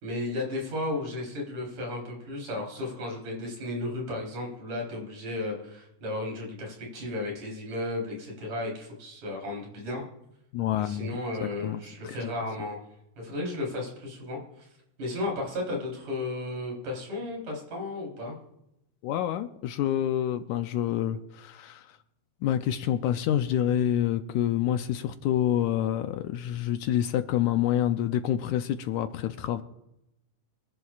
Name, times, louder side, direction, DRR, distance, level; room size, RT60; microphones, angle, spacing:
voice 1, 0.0-10.0 10.7-12.8 13.2-14.7 15.0-18.3, left 2 dB, 60° right, -1 dB, 5.3 m, -34 dB
voice 2, 10.5-11.2 11.6-12.3 19.0-22.0 22.4-29.6, left 11 dB, 80° left, 8 dB, 1.8 m, -27 dB
26.0 x 11.0 x 2.4 m, 0.84 s
omnidirectional pair, 3.8 m